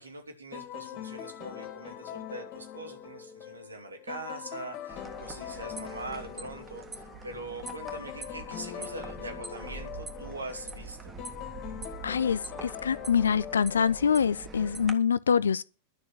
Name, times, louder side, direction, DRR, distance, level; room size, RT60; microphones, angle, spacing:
voice 1, 0.0-11.1, right 2 dB, 80° right, 3.1 m, -42 dB
sound 1, 0.5-14.7, left 10 dB, 40° left, 2.4 m, -43 dB
sound 2, 4.9-14.9, right 3 dB, 15° right, 1.8 m, -44 dB
voice 2, 12.0-15.6, left 7 dB, 70° left, 0.5 m, -25 dB
11.5 x 6.3 x 9.1 m
figure-of-eight pair, 90°, 0 cm